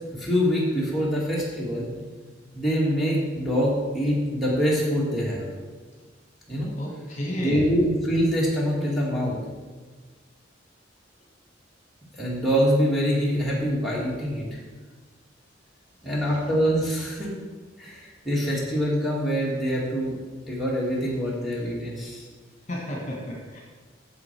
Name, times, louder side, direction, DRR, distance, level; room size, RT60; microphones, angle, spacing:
voice 1, 0.1-1.9 2.5-5.5 6.5-6.7 7.4-9.4 12.1-14.5 16.0-17.3 17.8-20.2 20.5-22.3, equal, ahead, -6 dB, 2.1 m, -25 dB
voice 2, 6.8-7.7 22.7-23.6, equal, 40° left, -2 dB, 1.6 m, -32 dB
7.6 x 7.3 x 4.6 m, 1.4 s
head